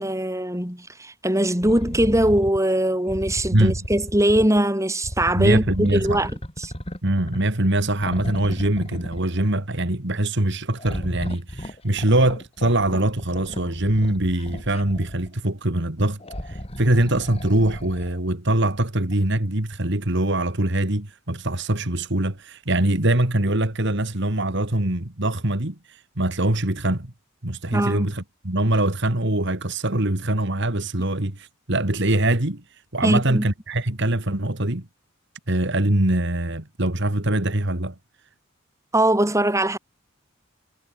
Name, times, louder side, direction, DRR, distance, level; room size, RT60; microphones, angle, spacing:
voice 1, 0.0-6.3 6.6-6.7 27.7-28.1 33.0-33.4 38.9-39.8, right 1 dB, 15° right, 6.3 m, -21 dB
sound 1, 1.6-2.6 3.1-4.6 5.0-7.6 8.0-9.6 10.8-15.3 16.2-18.2 19.1-19.2, equal, 30° left, 5.6 m, -34 dB
voice 2, 5.3-6.3 7.0-27.1 27.4-34.9 35.5-37.9, right 1 dB, 55° right, 2.6 m, -23 dB
head